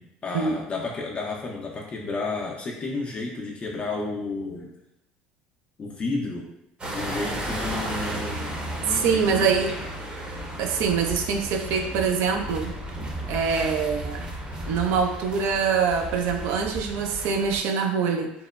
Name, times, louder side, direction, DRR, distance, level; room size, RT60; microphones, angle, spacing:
voice 1, 0.0-4.7 5.8-6.5 6.9-9.5, left 3 dB, 30° left, -1 dB, 0.4 m, -32 dB
sound 1, 6.8-17.6, right 1 dB, 25° right, 0.6 m, -34 dB
voice 2, 8.9-9.7 10.6-12.7 13.3-14.2 14.7-18.3, right 6 dB, 70° right, 4 dB, 0.4 m, -24 dB
2.9 x 2.1 x 2.3 m, 0.81 s
supercardioid pair, 85°, 4 cm